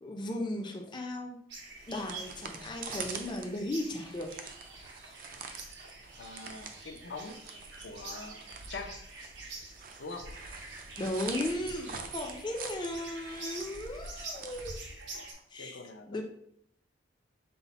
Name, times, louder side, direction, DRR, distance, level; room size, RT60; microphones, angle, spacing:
voice 1, 0.0-1.4 1.9-4.3 11.0-14.8 15.5-15.8 16.1-16.2, left 1 dB, 25° left, 2 dB, 0.4 m, -36 dB
sound 1, 1.5-15.3, right 3 dB, 80° right, 0.9 m, -47 dB
sound 2, 1.7-15.4, right 5 dB, 50° right, 0.4 m, -45 dB
voice 2, 6.2-7.4 7.8-8.4 8.7-9.0 10.0-10.3 15.5-16.2, left 3 dB, 80° left, 5 dB, 0.5 m, -43 dB
5.5 x 2.1 x 4.0 m, 0.71 s
head